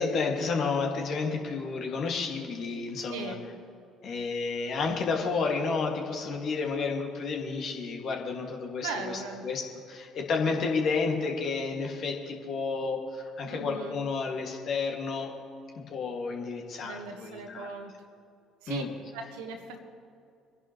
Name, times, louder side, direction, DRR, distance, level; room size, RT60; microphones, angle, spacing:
voice 1, 0.0-3.3 4.0-9.6 9.9-15.3 15.8-17.7 18.7-18.9, left 4 dB, 55° left, 1 dB, 2.2 m, -31 dB
voice 2, 3.1-3.5 8.8-9.5 13.5-14.0 16.8-18.0 18.6-18.8 19.1-19.8, right 4 dB, 70° right, 5 dB, 1.5 m, -38 dB
26.5 x 11.0 x 3.2 m, 2.5 s
figure-of-eight pair, 55°, 0 cm